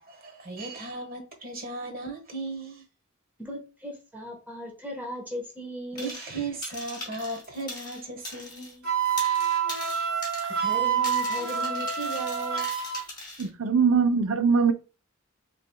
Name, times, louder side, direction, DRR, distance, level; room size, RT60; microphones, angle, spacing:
voice 1, 0.1-2.8 5.9-8.9, right 2 dB, 40° right, 1.3 m, -36 dB
voice 2, 3.4-6.2 10.4-12.7, equal, 10° right, 1.1 m, -37 dB
sound 1, 6.0-6.3 6.6-8.7 9.0-13.5, left 2 dB, 20° left, 2.5 m, -40 dB
Wind instrument woodwind instrument, 8.8-13.0, right 7 dB, 85° right, 1.5 m, -27 dB
voice 3, 13.4-14.7, right 5 dB, 70° right, 0.5 m, -22 dB
5.9 x 3.2 x 2.2 m
head